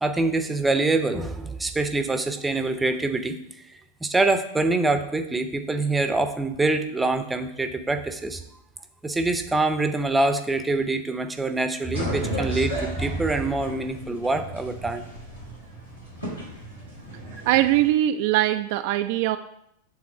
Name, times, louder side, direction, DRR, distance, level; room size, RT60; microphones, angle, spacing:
voice 1, 0.0-3.4 4.0-8.4 9.0-15.0, right 2 dB, 10° right, 8 dB, 0.7 m, -25 dB
sound 1, 11.9-17.9, equal, 85° left, 2.4 m, -35 dB
voice 2, 17.5-19.4, right 14 dB, 50° right, 8 dB, 0.3 m, -21 dB
7.3 x 3.8 x 6.1 m, 0.75 s
figure-of-eight pair, 90°, 0 cm